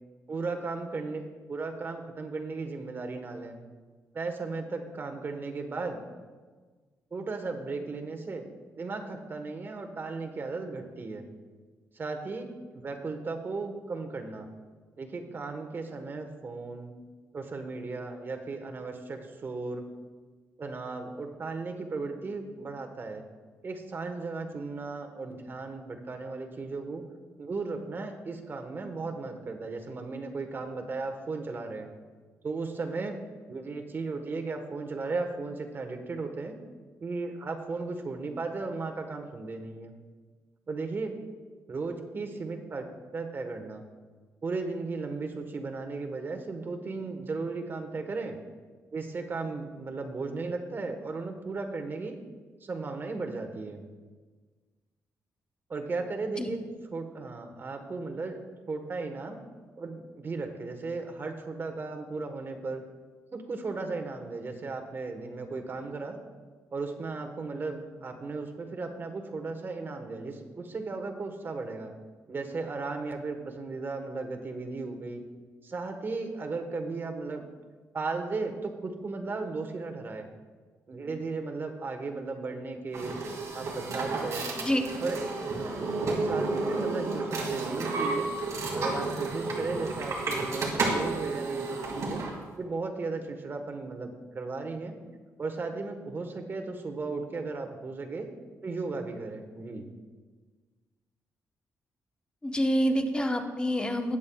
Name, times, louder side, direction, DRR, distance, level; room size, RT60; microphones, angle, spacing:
voice 1, 0.3-1.2 1.5-3.6 4.1-6.0 7.1-8.4 8.8-11.2 11.9-12.5 12.7-14.5 15.0-16.9 17.3-19.9 20.6-23.2 23.6-27.0 27.4-31.9 32.4-33.2 33.5-36.6 37.0-39.9 40.7-41.2 41.7-43.8 44.4-48.4 48.9-52.2 52.6-53.8 55.7-56.6 56.9-58.4 58.7-59.4 59.8-62.8 63.3-66.2 66.7-71.9 72.3-75.2 75.6-77.4 77.9-80.3 80.9-83.1 83.5-84.6 85.0-88.3 88.7-92.2 92.6-95.0 95.4-98.3 98.6-99.8, right 3 dB, 40° right, 4 dB, 1.2 m, -36 dB
sound 1, 82.9-92.3, right 3 dB, 65° right, 2.3 m, -31 dB
voice 2, 102.4-104.2, equal, 15° left, 4 dB, 1.0 m, -27 dB
19.5 x 7.4 x 2.3 m, 1.4 s
cardioid pair, 100°, 6 cm